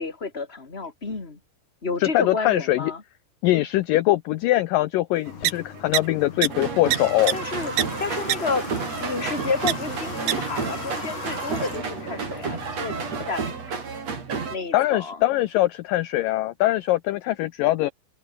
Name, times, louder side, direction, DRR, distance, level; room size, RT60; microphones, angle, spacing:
voice 1, 0.0-1.4 1.8-3.0 7.3-7.7 8.0-8.7 9.0-12.9 13.3-13.8 14.5-15.2, left 4 dB, 20° left, 2.3 m, -30 dB
voice 2, 2.0-2.9 3.4-7.3 14.7-17.9, left 16 dB, 80° left, 2.0 m, -22 dB
Water / Water tap faucet, 5.3-13.3, left 6 dB, 45° left, 4.7 m, -38 dB
sound 1, 5.4-5.5 5.9-6.0 6.4-6.5 6.9-7.0 7.3-7.4 7.8-7.9 8.3-8.4 9.7-9.8 10.3-10.4, right 15 dB, 80° right, 3.1 m, -21 dB
sound 2, 6.5-14.6, right 5 dB, 40° right, 4.7 m, -31 dB
omnidirectional pair, 4.8 m